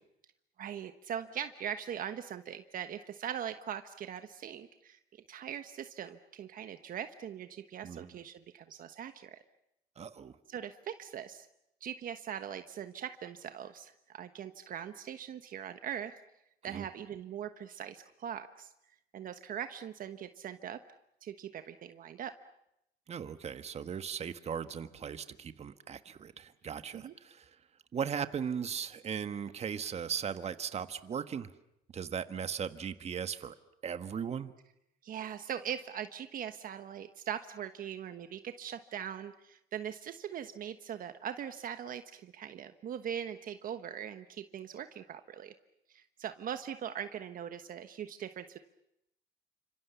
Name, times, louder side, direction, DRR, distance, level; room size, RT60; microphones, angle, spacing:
voice 1, 0.6-9.4 10.5-11.5 11.8-16.1 16.6-18.7 19.1-20.8 21.2-22.3 26.9-27.1 35.0-45.5 45.9-48.6, right 9 dB, 55° right, 9 dB, 1.3 m, -41 dB
voice 2, 10.0-10.4 16.7-16.8 23.1-27.5 27.9-31.5 31.9-33.5 33.8-34.5, right 7 dB, 40° right, 11 dB, 1.5 m, -38 dB
29.5 x 26.5 x 7.0 m, 0.80 s
cardioid pair, 110°, 17 cm